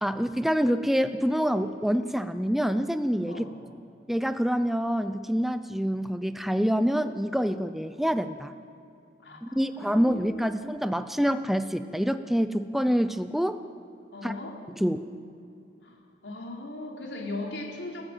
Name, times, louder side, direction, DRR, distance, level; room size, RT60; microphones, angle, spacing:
voice 1, 0.0-3.5 4.1-8.5 9.4-13.6 14.2-14.3 14.8-15.1, equal, ahead, 10 dB, 0.6 m, -26 dB
voice 2, 9.2-10.8 14.1-14.6 15.8-18.1, left 2 dB, 90° left, 0 dB, 4.1 m, -39 dB
30.0 x 15.0 x 9.2 m, 2.6 s
head